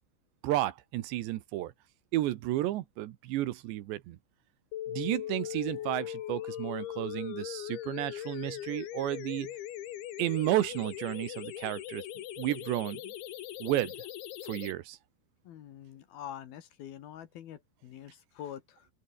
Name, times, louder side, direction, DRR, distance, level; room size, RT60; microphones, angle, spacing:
voice 1, 0.4-1.7 2.1-4.2 4.9-9.5 10.2-12.0 12.4-13.1 13.6-13.9 14.4-15.0, right 15 dB, 75° right, 3.3 m, -32 dB
sound 1, 4.7-14.7, left 12 dB, 85° left, 4.2 m, -40 dB
voice 2, 15.4-18.9, left 10 dB, 65° left, 3.1 m, -45 dB
open air
omnidirectional pair, 5.3 m